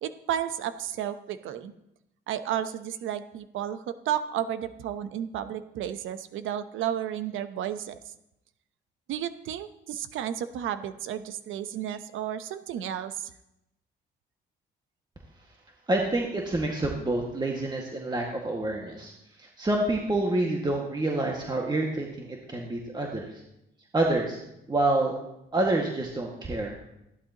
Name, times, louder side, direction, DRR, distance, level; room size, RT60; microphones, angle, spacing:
voice 1, 0.0-1.7 2.3-7.9 9.1-13.3, right 10 dB, 80° right, 11 dB, 0.9 m, -32 dB
voice 2, 15.9-19.1 19.4-23.4 23.9-24.4 24.7-25.1 25.5-26.8, right 2 dB, 20° right, 0 dB, 1.8 m, -27 dB
15.0 x 11.5 x 3.0 m, 0.84 s
cardioid pair, 90°, 20 cm